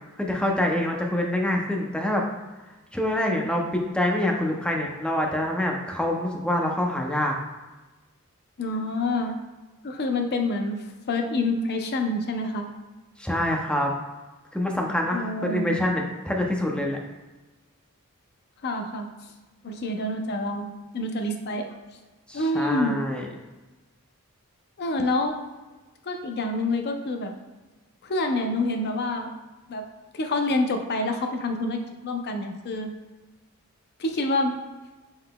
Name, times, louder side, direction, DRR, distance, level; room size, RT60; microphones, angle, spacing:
voice 1, 0.2-2.2 2.9-7.3 13.2-13.9 14.5-17.0 22.3-23.3, left 1 dB, 5° left, 1 dB, 0.5 m, -26 dB
voice 2, 8.6-9.3 9.8-10.8 11.1-12.7 15.1-15.7 18.6-19.1 19.6-20.6 20.9-21.7 22.3-23.0 24.8-25.4 26.0-27.3 28.0-29.3 29.7-29.8 30.1-32.9 34.0-34.5, left 2 dB, 50° left, 4 dB, 0.5 m, -27 dB
5.4 x 3.8 x 2.2 m, 1.2 s
head